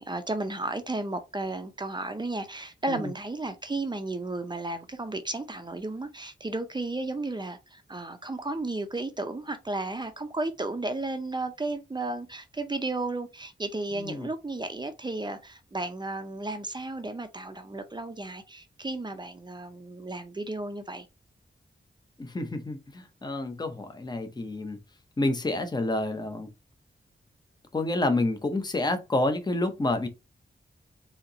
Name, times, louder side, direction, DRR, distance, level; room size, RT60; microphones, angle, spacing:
voice 1, 0.0-21.1, right 2 dB, 25° right, 0.6 m, -33 dB
voice 2, 13.9-14.3 22.2-24.8 25.2-26.5 27.7-30.1, left 2 dB, 20° left, 0.7 m, -29 dB
4.3 x 2.8 x 3.8 m
wide cardioid pair, 150°, 19 cm